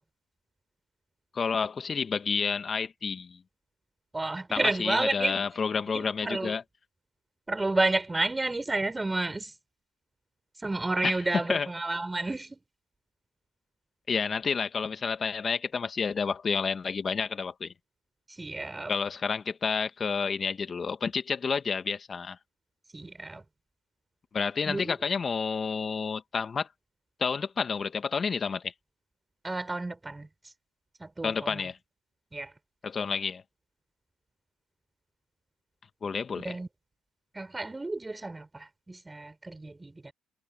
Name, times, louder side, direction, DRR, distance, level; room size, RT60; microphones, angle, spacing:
voice 1, 1.3-3.4 4.5-6.6 11.0-11.1 11.5-11.7 14.1-17.7 18.9-22.4 24.3-26.7 27.2-28.7 31.2-31.8 32.8-33.4 36.0-36.5, left 5 dB, 35° left, 2.0 m, -30 dB
voice 2, 4.1-5.4 5.9-6.5 7.5-9.5 10.6-12.6 18.3-18.9 22.9-23.4 24.7-24.9 29.4-30.3 31.0-31.7 32.3-32.5 36.3-36.7 37.3-40.1, right 2 dB, 15° right, 7.8 m, -31 dB
hypercardioid pair, 65°, 0 cm